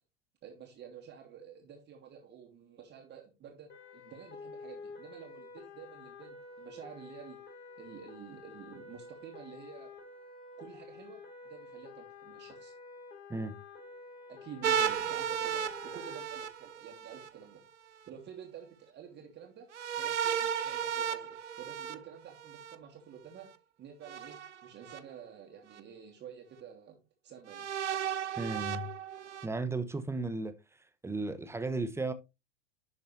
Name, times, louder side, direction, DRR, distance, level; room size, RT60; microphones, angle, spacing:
voice 1, 0.4-7.4 7.8-9.9 10.6-12.7 14.3-17.6 18.1-19.7 20.0-23.5 23.8-27.0 27.2-27.7, right 8 dB, 30° right, 2.7 m, -50 dB
sound 1, 3.7-16.2, left 4 dB, 25° left, 4.6 m, -50 dB
sound 2, 14.6-17.3 19.7-22.7 24.0-25.0 25.7-25.8 27.5-29.5, right 8 dB, 75° right, 1.0 m, -34 dB
voice 2, 28.4-28.9 29.4-30.5 31.0-32.1, right 3 dB, 5° right, 0.9 m, -34 dB
11.0 x 6.7 x 3.2 m
figure-of-eight pair, 90°, 35 cm